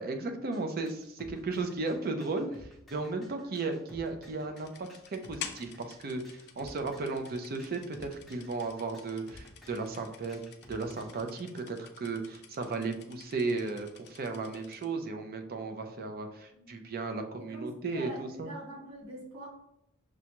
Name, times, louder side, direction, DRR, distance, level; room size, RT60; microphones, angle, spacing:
voice 1, 0.0-10.4 10.7-18.5, right 3 dB, 45° right, 5 dB, 0.5 m, -35 dB
sound 1, 0.5-11.2, left 1 dB, ahead, 0.7 m, -55 dB
voice 2, 3.3-3.6 16.5-16.9 17.4-19.5, equal, 85° right, -4 dB, 1.6 m, -43 dB
sound 2, 4.6-14.9, left 8 dB, 50° left, 0.4 m, -50 dB
6.1 x 2.3 x 2.9 m, 0.76 s
head